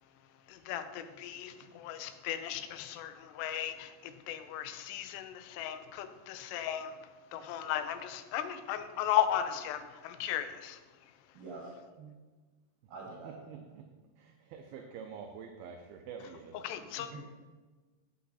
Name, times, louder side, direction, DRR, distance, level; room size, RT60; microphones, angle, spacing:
voice 1, 0.5-10.8 16.6-17.1, left 11 dB, 80° left, 9 dB, 2.7 m, -36 dB
voice 2, 11.3-12.1 12.9-13.6 16.9-17.2, right 3 dB, 60° right, -4 dB, 3.3 m, -46 dB
voice 3, 13.5-13.8 14.2-16.5, right 6 dB, 80° right, 3 dB, 2.4 m, -46 dB
8.5 x 8.2 x 4.2 m, 1.3 s
omnidirectional pair, 4.8 m